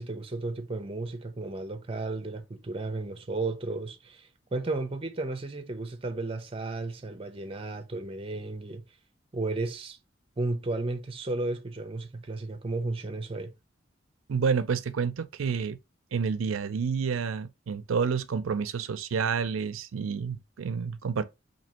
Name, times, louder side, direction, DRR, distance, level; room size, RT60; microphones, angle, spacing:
voice 1, 0.0-8.8 9.3-10.0 10.4-13.5, right 2 dB, 30° right, 0.5 m, -33 dB
voice 2, 14.3-15.8 16.1-21.2, right 6 dB, 85° right, 0.4 m, -29 dB
4.2 x 2.8 x 2.9 m
head